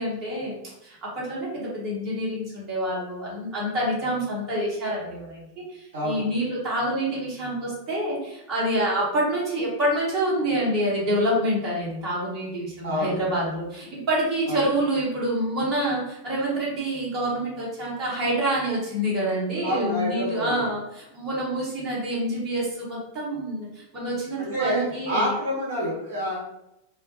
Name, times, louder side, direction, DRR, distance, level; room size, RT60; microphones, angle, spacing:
voice 1, 0.0-25.3, right 1 dB, 30° right, -6 dB, 0.8 m, -27 dB
voice 2, 5.9-6.3 12.8-13.2 14.5-14.6 19.6-20.6 24.4-26.4, equal, 60° right, -5 dB, 0.9 m, -27 dB
2.2 x 2.0 x 2.7 m, 0.85 s
figure-of-eight pair, 90°, 0 cm